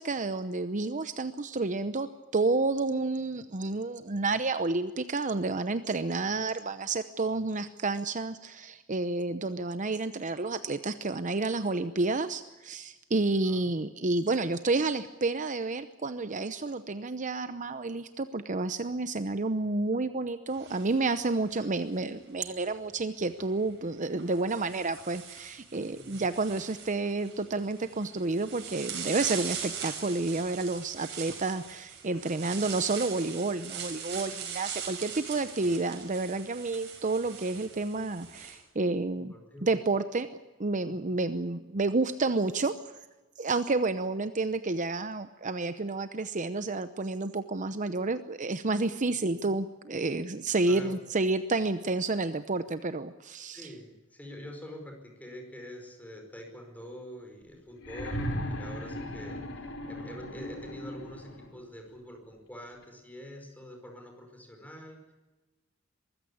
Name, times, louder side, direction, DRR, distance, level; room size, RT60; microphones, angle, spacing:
voice 1, 0.0-39.3 39.6-40.3 40.6-42.7 43.4-53.7, right 3 dB, 40° right, 11 dB, 0.8 m, -30 dB
voice 2, 13.4-13.8 25.9-26.2 32.5-32.8 39.3-39.7 40.8-41.1 50.6-51.0 53.5-59.4 59.9-65.1, equal, 10° left, 3 dB, 5.0 m, -46 dB
sound 1, 20.5-22.0 23.3-23.4 24.2-38.6, right 7 dB, 60° right, 5.7 m, -41 dB
sound 2, 57.8-61.6 62.8-62.9, equal, 65° left, 4.2 m, -37 dB
23.0 x 15.5 x 8.5 m, 1.1 s
head